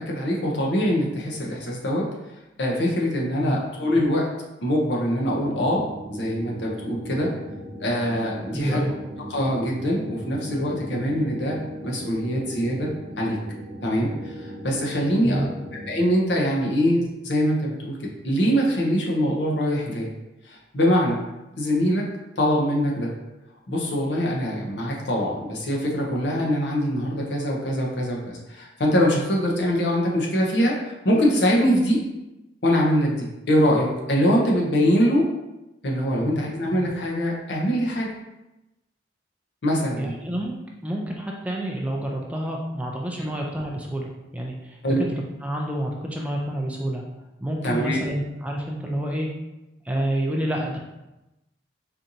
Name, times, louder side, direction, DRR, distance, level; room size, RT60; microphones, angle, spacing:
voice 1, 0.0-2.0 2.6-4.3 4.6-5.8 6.1-7.3 7.8-8.8 9.3-11.6 11.8-12.9 13.2-13.4 13.8-15.5 15.9-18.0 18.2-20.1 20.4-21.2 21.6-22.0 22.4-23.1 23.7-32.0 32.6-35.3 35.8-38.1 39.6-40.1 43.2-43.3 44.8-45.0 47.6-48.0, equal, 65° left, -2 dB, 0.7 m, -23 dB
sound 1, 5.1-16.1, equal, 65° right, 0.9 m, -38 dB
voice 2, 8.5-8.9 15.2-15.5 36.2-36.4 39.9-40.5 40.8-45.1 45.4-47.0 47.4-49.3 49.8-50.8, right 1 dB, 5° right, -1 dB, 0.3 m, -28 dB
4.3 x 2.6 x 2.6 m, 0.98 s
head